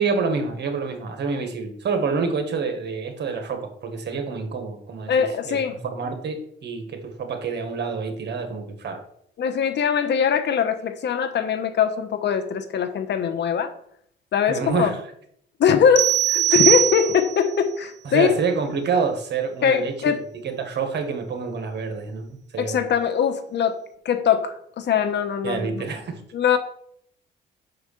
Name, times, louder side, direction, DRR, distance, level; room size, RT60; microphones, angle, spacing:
voice 1, 0.0-9.0 14.5-15.0 18.0-20.1 20.4-22.9 25.4-26.2, right 5 dB, 60° right, 6 dB, 1.6 m, -27 dB
voice 2, 5.1-5.8 9.4-13.7 14.3-14.9 15.6-18.4 19.6-20.2 22.6-23.8 24.0-25.9 26.3-26.6, left 7 dB, 60° left, 9 dB, 1.0 m, -22 dB
sound 1, 16.0-17.5, right 13 dB, 85° right, 0.9 m, -20 dB
6.2 x 4.8 x 6.5 m, 0.68 s
cardioid pair, 90°, 20 cm